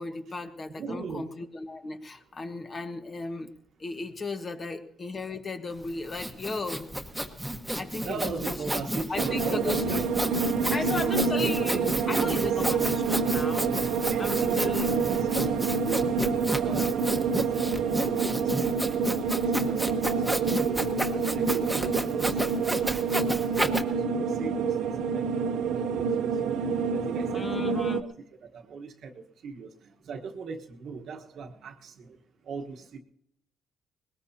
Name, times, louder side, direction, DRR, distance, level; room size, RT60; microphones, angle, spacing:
voice 1, 0.0-3.5 3.8-6.9 7.7-8.6 9.1-9.9 10.7-14.9 27.3-28.0, left 3 dB, 40° left, 6 dB, 1.4 m, -35 dB
voice 2, 0.7-1.3 8.0-10.1 10.7-12.5 14.1-16.1 16.5-17.5 17.9-19.0 19.4-20.8 21.2-23.1 23.4-26.6 26.9-28.1 28.4-29.1 29.4-29.7 30.1-32.2 32.5-33.0, right 5 dB, 65° right, 5 dB, 1.2 m, -39 dB
Sawing, 5.8-23.8, right 1 dB, 5° right, 1.3 m, -32 dB
sound 1, 9.2-28.0, right 5 dB, 80° right, 0.6 m, -27 dB
20.5 x 19.0 x 2.8 m, 0.73 s
cardioid pair, 90°, 0 cm